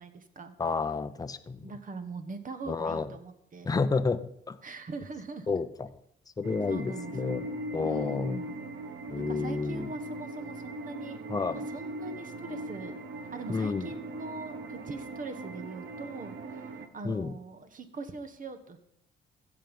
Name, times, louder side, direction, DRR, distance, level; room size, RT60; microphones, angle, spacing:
voice 1, 0.0-0.5 1.6-3.7 4.6-5.6 6.7-7.4 7.8-8.5 9.2-11.2 11.5-13.0 13.3-18.8, right 3 dB, 40° right, 9 dB, 1.3 m, -42 dB
voice 2, 0.6-1.6 2.7-3.1 3.6-4.2 4.5-4.6 5.5-5.9 6.4-7.4 7.7-8.4 9.1-9.9 11.3-11.6 13.5-13.9 17.0-17.3, left 4 dB, 20° left, 10 dB, 0.6 m, -30 dB
sound 1, 6.4-16.9, right 1 dB, 60° right, 1.1 m, -40 dB
15.5 x 6.1 x 5.3 m, 0.75 s
cardioid pair, 90°, 20 cm